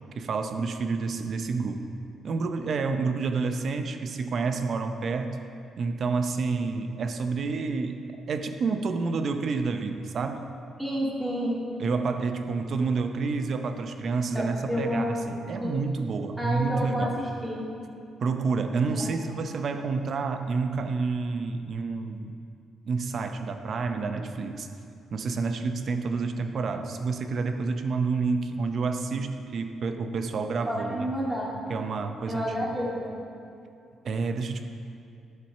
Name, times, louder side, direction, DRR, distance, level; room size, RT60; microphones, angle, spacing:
voice 1, 0.2-1.9 2.2-5.4 5.8-10.5 11.8-17.1 18.2-22.3 22.9-24.7 25.1-31.1 31.7-32.7 34.0-34.7, right 4 dB, 55° right, 7 dB, 0.6 m, -29 dB
voice 2, 10.8-11.6 14.3-15.7 16.4-17.6 18.8-19.1 30.7-31.6 32.3-33.2, equal, 5° right, -4 dB, 2.1 m, -30 dB
11.5 x 4.3 x 6.6 m, 2.5 s
cardioid pair, 90°, 0 cm